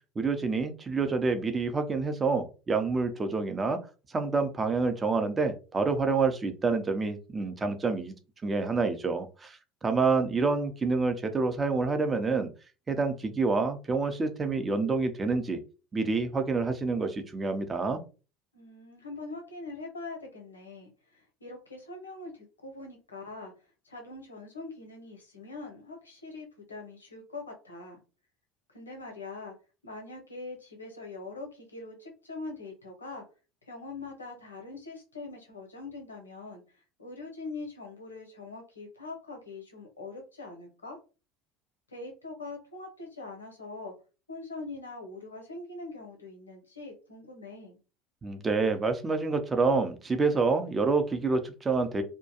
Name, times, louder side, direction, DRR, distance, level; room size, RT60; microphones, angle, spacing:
voice 1, 0.2-3.8 4.1-8.1 8.4-12.5 12.9-15.6 15.9-18.0 48.2-52.0, right 4 dB, 25° right, 7 dB, 0.6 m, -27 dB
voice 2, 18.5-23.5 23.8-28.0 28.7-29.5 29.8-33.2 33.7-41.0 41.9-43.9 44.3-47.8, left 3 dB, 90° left, 1 dB, 0.7 m, -43 dB
2.3 x 2.2 x 2.8 m, 0.34 s
hypercardioid pair, 70°, 0 cm